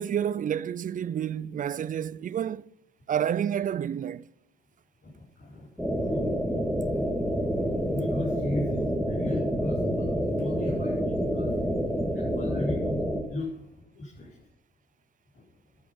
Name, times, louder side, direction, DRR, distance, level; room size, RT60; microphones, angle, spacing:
voice 1, 0.0-2.7 3.1-4.3, right 9 dB, 40° right, 0.5 m, -29 dB
voice 2, 5.0-5.7 5.9-6.4 6.8-7.0 7.4-14.4 15.3-15.4, left 1 dB, 55° left, 5.1 m, -36 dB
sound 1, 5.8-13.2, equal, ahead, 2.0 m, -28 dB
12.0 x 11.5 x 5.4 m
cardioid pair, 90°, 20 cm